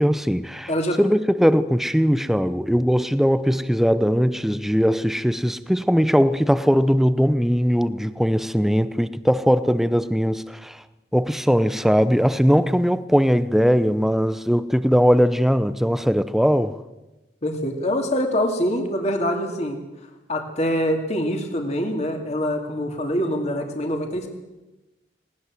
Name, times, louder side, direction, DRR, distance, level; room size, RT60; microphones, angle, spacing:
voice 1, 0.0-0.7 1.0-10.8 11.1-16.8, equal, ahead, 0.7 m, -20 dB
voice 2, 0.7-1.0 17.4-19.8 20.3-24.3, equal, 35° left, 2.7 m, -24 dB
19.5 x 19.0 x 7.7 m
head